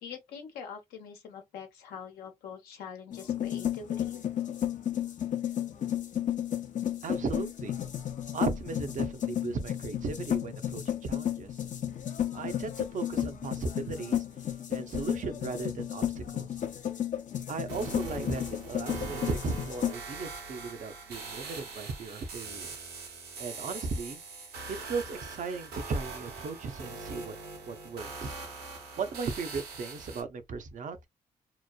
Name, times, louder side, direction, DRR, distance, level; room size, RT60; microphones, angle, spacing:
voice 1, 0.0-4.2, left 6 dB, 80° left, 0.9 m, -44 dB
sound 1, 3.1-19.9, left 10 dB, 50° left, 0.7 m, -33 dB
voice 2, 7.0-7.8 8.3-11.6 12.3-14.2 14.7-16.5 17.5-22.7 23.4-24.2 24.7-27.3 27.7-28.3 29.0-31.1, right 4 dB, 55° right, 0.7 m, -36 dB
sound 2, 17.7-30.2, right 4 dB, 75° right, 1.2 m, -42 dB
2.9 x 2.0 x 2.3 m
supercardioid pair, 50°, 16 cm